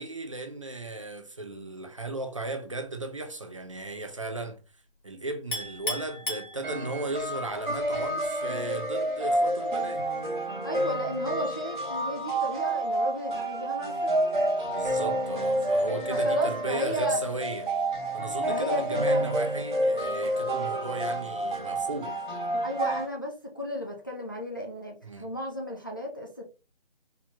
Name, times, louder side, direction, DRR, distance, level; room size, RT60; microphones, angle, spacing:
voice 1, 0.0-4.6 5.0-10.0 14.6-17.7 18.1-22.1 25.0-25.3, right 2 dB, 30° right, 0.6 m, -36 dB
Chink clink, 5.5-7.2, left 1 dB, 55° left, 2.4 m, -35 dB
sound 1, 6.6-23.1, right 1 dB, 50° right, 2.1 m, -29 dB
voice 2, 10.6-14.1 16.1-17.2 18.5-19.3 22.6-26.5, equal, 20° left, 0.5 m, -34 dB
4.6 x 4.0 x 2.8 m
figure-of-eight pair, 165°, 30 cm